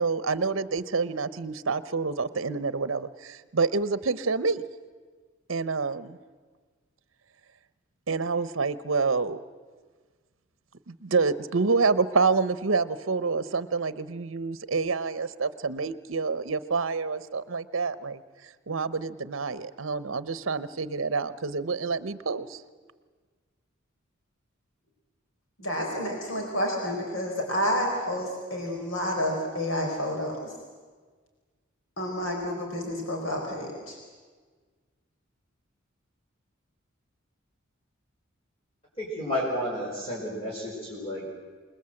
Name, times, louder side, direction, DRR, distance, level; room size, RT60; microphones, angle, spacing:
voice 1, 0.0-4.6 5.5-6.2 8.1-9.4 10.9-18.2 18.7-22.6, right 4 dB, 70° right, 14 dB, 0.8 m, -27 dB
voice 2, 25.6-30.5 32.0-34.0, equal, 80° left, 1 dB, 4.2 m, -29 dB
voice 3, 39.0-41.4, equal, 30° left, -4 dB, 4.8 m, -31 dB
27.0 x 20.0 x 7.7 m, 1.5 s
head